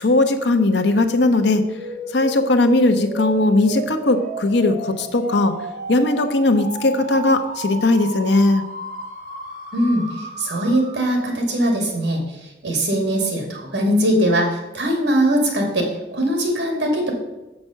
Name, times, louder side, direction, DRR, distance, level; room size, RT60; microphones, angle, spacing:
voice 1, 0.0-1.6 2.1-5.5 5.9-8.6, left 2 dB, 70° left, 7 dB, 0.9 m, -18 dB
sound 1, 1.4-11.3, right 1 dB, 45° right, 2.2 m, -33 dB
voice 2, 9.7-17.1, right 1 dB, 70° right, 1 dB, 2.5 m, -21 dB
7.7 x 6.0 x 6.4 m, 1.0 s
head